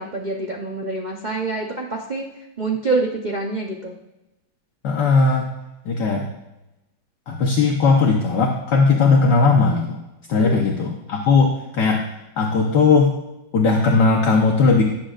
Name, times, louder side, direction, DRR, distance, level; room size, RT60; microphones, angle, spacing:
voice 1, 0.0-2.3 2.6-3.9 10.4-10.6, right 3 dB, 70° right, -2 dB, 0.4 m, -26 dB
voice 2, 4.8-5.5 5.9-6.2 7.3-10.0 10.3-12.0 12.4-13.1 13.5-14.8, left 4 dB, 65° left, 1 dB, 1.4 m, -17 dB
17.0 x 7.5 x 2.4 m, 0.95 s
omnidirectional pair, 2.2 m